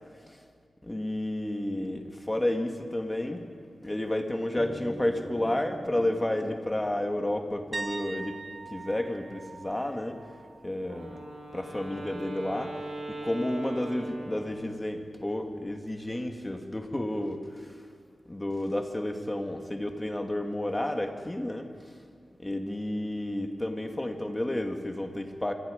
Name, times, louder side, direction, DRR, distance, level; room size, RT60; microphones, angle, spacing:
voice 1, 0.8-3.5 3.8-8.4 8.7-10.2 10.6-11.2 11.5-17.9 18.3-21.9 22.4-25.5, left 1 dB, 15° left, 4 dB, 1.9 m, -31 dB
sound 1, 4.6-9.2, equal, 10° right, 4.1 m, -43 dB
sound 2, 7.7-11.5 11.8-12.1 15.0-15.1, right 3 dB, 45° right, 0.5 m, -42 dB
Wind instrument woodwind instrument, 10.8-14.9, right 1 dB, 90° right, 6.8 m, -40 dB
27.5 x 26.0 x 5.2 m, 2.1 s
wide cardioid pair, 135°, 0 cm